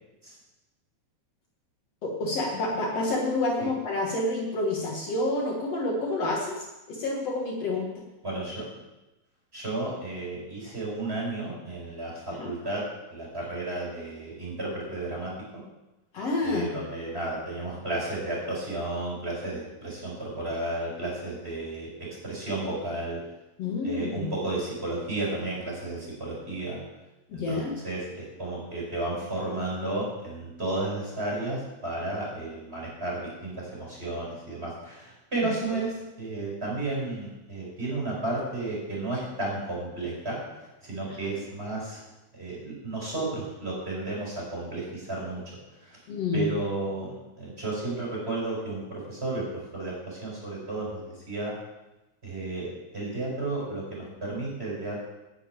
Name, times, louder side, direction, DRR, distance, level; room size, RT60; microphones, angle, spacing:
voice 1, 2.0-7.9 12.4-12.5 16.1-16.7 23.6-24.3 27.3-27.7 35.4-35.8 41.1-41.2 46.1-46.5, left 2 dB, 60° left, -1 dB, 2.7 m, -29 dB
voice 2, 8.2-8.6 9.5-12.8 13.1-15.3 16.4-23.2 23.8-26.8 27.3-40.4 40.8-42.0 42.3-45.4 45.8-46.0 46.3-47.1 47.4-51.5 52.2-55.1, right 2 dB, 20° right, -4 dB, 5.4 m, -33 dB
10.5 x 7.2 x 9.1 m, 1.0 s
omnidirectional pair, 3.3 m